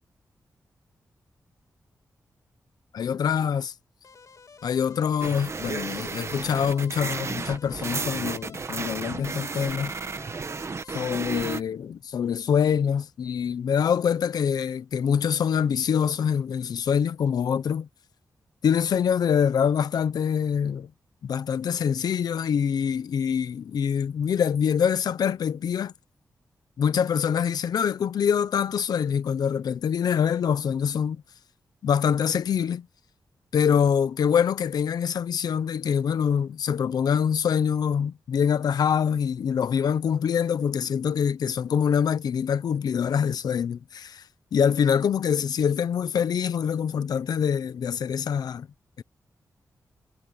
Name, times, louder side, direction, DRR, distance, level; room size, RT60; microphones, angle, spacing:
voice 1, 2.9-3.7 4.6-9.9 10.9-17.9 18.6-20.9 21.2-25.9 26.8-31.2 31.8-32.9 33.5-44.2 44.5-48.7 49.0-49.1, left 7 dB, 85° left, 1.0 m, -25 dB
sound 1, 4.0-10.9, left 5 dB, 55° left, 2.4 m, -51 dB
sound 2, 5.2-11.6, right 4 dB, 45° right, 1.4 m, -33 dB
cardioid pair, 85°, 7 cm